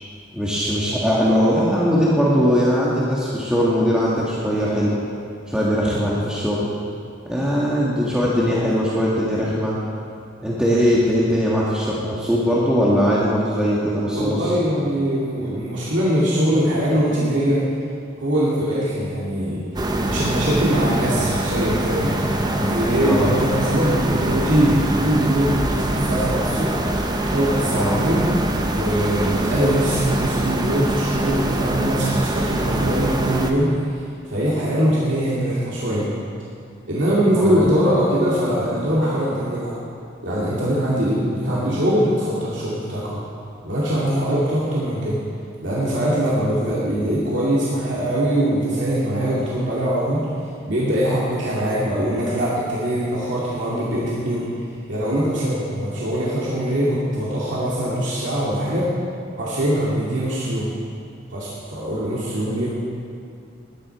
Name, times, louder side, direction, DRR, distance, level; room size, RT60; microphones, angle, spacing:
voice 1, 0.3-5.0 5.5-6.7 7.2-9.7 10.4-14.5 23.0-23.3 27.7-28.0 37.4-37.7 41.5-41.7, equal, 5° right, -7 dB, 1.7 m, -20 dB
voice 2, 14.1-17.6 18.2-19.6 20.0-26.8 27.3-28.3 28.7-33.8 34.3-36.1 36.9-39.8 40.2-43.2 43.6-45.2 45.6-50.3 50.6-54.5 54.9-58.9 59.4-60.7 61.3-62.7, right 1 dB, 70° right, -7 dB, 2.7 m, -22 dB
sound 1, 19.8-33.5, right 1 dB, 20° right, 1.0 m, -24 dB
20.5 x 10.0 x 4.8 m, 2.4 s
head